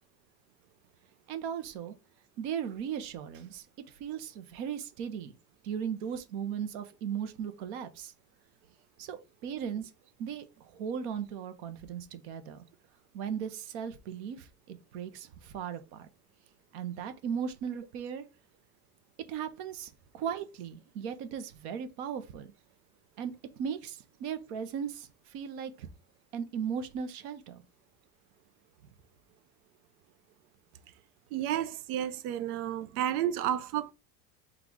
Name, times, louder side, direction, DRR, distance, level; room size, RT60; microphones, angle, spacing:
voice 1, 1.3-1.9 2.4-5.3 5.6-8.1 9.0-9.9 10.2-12.6 13.1-16.1 16.7-18.2 19.3-22.5 23.2-25.9 26.3-27.6, right 8 dB, 50° right, 0.7 m, -37 dB
voice 2, 31.3-33.9, right 11 dB, 85° right, 0.6 m, -31 dB
3.9 x 2.4 x 4.5 m
supercardioid pair, 165°, 43 cm